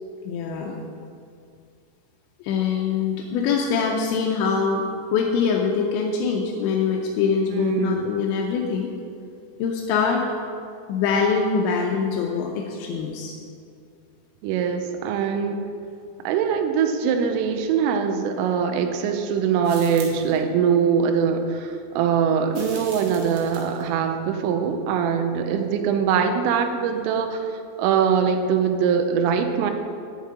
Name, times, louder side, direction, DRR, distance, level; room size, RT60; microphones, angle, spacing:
voice 1, 0.2-0.7 2.4-8.9 9.6-10.2 10.9-13.4, left 5 dB, 80° left, 0 dB, 2.7 m, -23 dB
voice 2, 7.5-8.1 14.4-15.7 16.2-29.7, right 7 dB, 80° right, 5 dB, 3.3 m, -22 dB
sound 1, 19.6-20.4 22.5-23.9, right 4 dB, 60° right, 3.1 m, -41 dB
8.3 x 7.4 x 8.6 m, 2.4 s
omnidirectional pair, 5.9 m